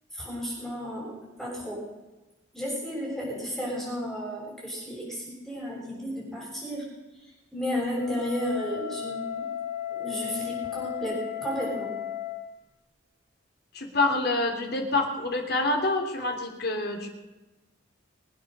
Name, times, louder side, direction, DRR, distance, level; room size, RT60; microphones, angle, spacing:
voice 1, 0.1-1.9 2.5-9.5 9.9-11.9, equal, ahead, -4 dB, 6.6 m, -33 dB
Wind instrument woodwind instrument, 7.8-12.5, left 10 dB, 75° right, 6.0 m, -35 dB
voice 2, 13.7-17.1, left 2 dB, 55° left, 3 dB, 3.1 m, -27 dB
23.5 x 8.8 x 6.7 m, 1.1 s
head